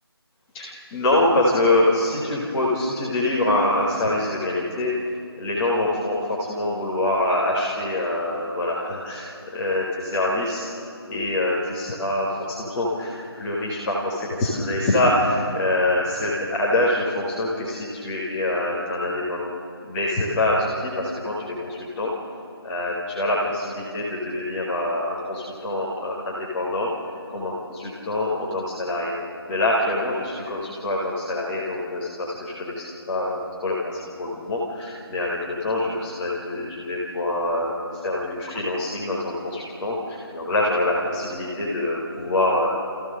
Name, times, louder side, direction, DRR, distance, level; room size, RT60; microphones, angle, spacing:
voice 1, 0.5-5.0 5.4-10.7 11.0-19.5 19.9-22.1 22.6-26.9 27.3-29.2 29.5-37.7 38.0-42.7, left 1 dB, 5° left, -8 dB, 0.9 m, -25 dB
28.0 x 15.0 x 6.4 m, 2.7 s
figure-of-eight pair, 175°, 14 cm